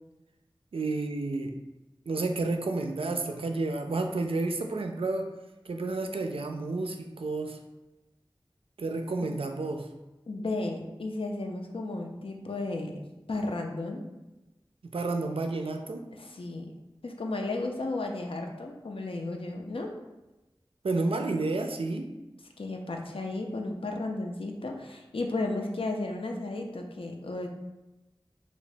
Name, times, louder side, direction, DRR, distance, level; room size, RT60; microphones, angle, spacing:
voice 1, 0.7-1.5 2.1-5.3 5.7-7.6 8.8-9.9 14.8-16.0 20.8-22.1, right 3 dB, 80° right, 5 dB, 0.3 m, -30 dB
voice 2, 10.3-13.0 13.3-14.0 16.2-16.7 17.0-19.9 22.6-27.5, left 2 dB, 75° left, 2 dB, 0.4 m, -34 dB
2.9 x 2.7 x 3.2 m, 1.0 s
wide cardioid pair, 45°, 9 cm